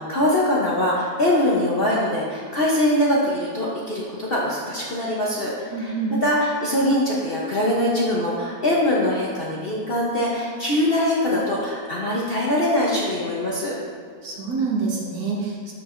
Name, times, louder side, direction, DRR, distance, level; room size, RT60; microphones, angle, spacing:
voice 1, 0.0-6.0 6.2-13.7, left 1 dB, 45° left, -5 dB, 0.9 m, -22 dB
voice 2, 5.7-6.1 14.2-15.7, right 4 dB, 65° right, -3 dB, 1.7 m, -26 dB
12.0 x 4.5 x 2.6 m, 2.2 s
omnidirectional pair, 1.8 m